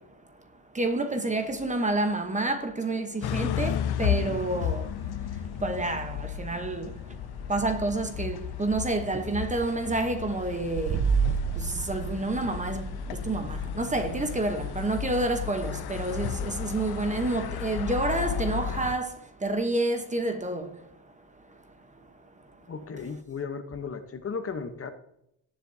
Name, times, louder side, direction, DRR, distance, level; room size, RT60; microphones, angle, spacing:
voice 1, 0.7-4.9 5.6-6.9 7.5-11.0 11.6-20.7, right 2 dB, 20° right, 1.0 m, -29 dB
sound 1, 3.2-19.0, left 9 dB, 70° left, 0.8 m, -33 dB
sound 2, 10.8-16.3, right 6 dB, 45° right, 0.7 m, -32 dB
voice 2, 22.7-24.9, left 5 dB, 35° left, 1.0 m, -35 dB
18.5 x 7.6 x 2.7 m
cardioid pair, 135°, 40 cm